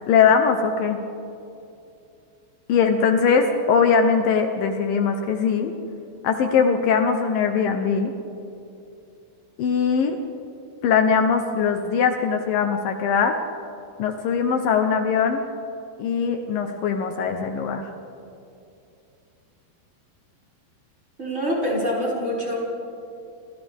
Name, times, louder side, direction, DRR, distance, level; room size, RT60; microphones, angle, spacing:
voice 1, 0.1-1.0 2.7-5.7 6.2-8.1 9.6-10.2 10.8-13.4 14.0-15.4 16.0-17.9, left 6 dB, 80° left, 5 dB, 2.0 m, -21 dB
voice 2, 21.2-22.6, equal, 15° right, -5 dB, 6.4 m, -25 dB
30.0 x 27.0 x 3.6 m, 2.6 s
omnidirectional pair, 5.4 m